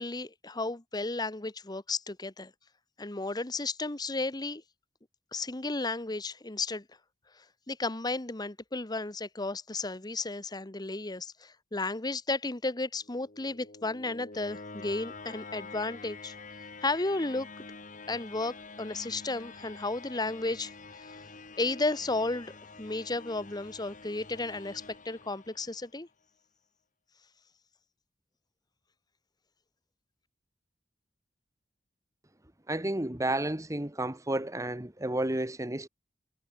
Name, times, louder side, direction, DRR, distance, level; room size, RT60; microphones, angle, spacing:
voice 1, 0.0-2.5 3.0-4.6 5.3-6.8 7.7-16.3 16.8-17.5 18.1-21.2 21.6-26.1, left 2 dB, 25° left, 1.2 m, -33 dB
sound 1, 13.0-26.0, left 3 dB, 45° left, 2.8 m, -47 dB
voice 2, 32.7-35.9, right 1 dB, 20° right, 1.5 m, -31 dB
head